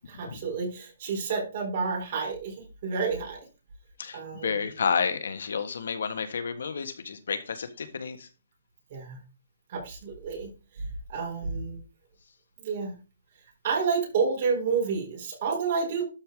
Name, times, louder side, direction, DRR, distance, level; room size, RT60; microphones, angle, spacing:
voice 1, 0.1-3.4 4.1-4.7 8.9-9.2 9.7-11.8 12.6-13.0 13.6-16.0, right 5 dB, 35° right, -1 dB, 4.0 m, -30 dB
voice 2, 4.0-8.3, left 6 dB, 70° left, 10 dB, 1.5 m, -30 dB
12.0 x 4.8 x 3.9 m, 0.31 s
hypercardioid pair, 170°, 0 cm